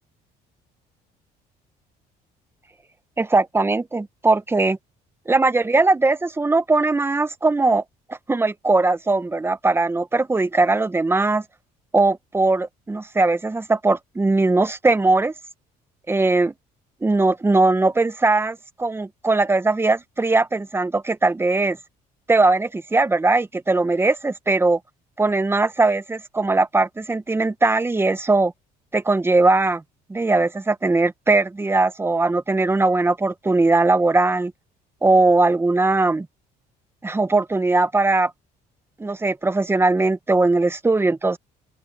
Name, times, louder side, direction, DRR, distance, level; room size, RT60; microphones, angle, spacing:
voice 1, 3.2-4.8 5.3-7.8 8.1-11.4 11.9-15.3 16.1-16.5 17.0-21.8 22.3-24.8 25.2-28.5 28.9-29.8 30.1-34.5 35.0-36.3 37.0-38.3 39.0-41.4, right 3 dB, 15° right, 1.0 m, -20 dB
open air
cardioid pair, 110°, 17 cm